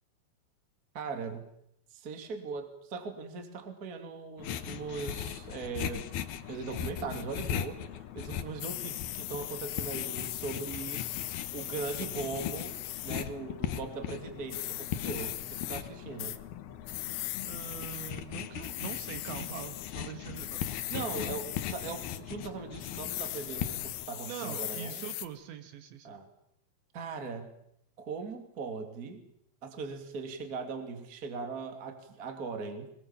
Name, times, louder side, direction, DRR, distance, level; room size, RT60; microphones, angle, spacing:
voice 1, 0.9-1.5 1.9-6.1 6.5-11.0 11.5-16.3 20.9-25.1 26.0-26.3 26.9-27.5 28.0-29.2 29.6-32.9, right 4 dB, 25° right, 5 dB, 2.1 m, -39 dB
sound 1, 4.4-24.1, left 10 dB, 65° left, 2.6 m, -39 dB
sound 2, 8.6-13.3 14.5-15.8 16.2-16.4 16.9-18.1 18.6-19.9 20.4-22.2 22.8-25.3, left 16 dB, 85° left, 3.6 m, -39 dB
voice 2, 17.4-21.2 24.3-26.2, right 9 dB, 70° right, 8 dB, 3.5 m, -43 dB
26.0 x 21.0 x 7.4 m, 0.72 s
omnidirectional pair, 5.8 m